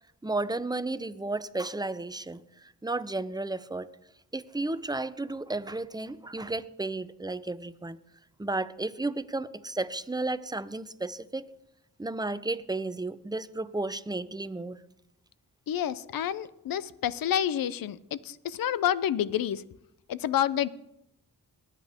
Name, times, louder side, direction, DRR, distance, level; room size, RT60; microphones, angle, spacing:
voice 1, 0.2-3.9 4.3-8.0 8.4-11.5 12.0-14.8, right 2 dB, 10° right, 14 dB, 0.7 m, -33 dB
voice 2, 15.7-19.6 20.1-20.7, left 10 dB, 70° left, 17 dB, 0.7 m, -29 dB
19.5 x 8.4 x 3.6 m, 0.79 s
supercardioid pair, 50°, 36 cm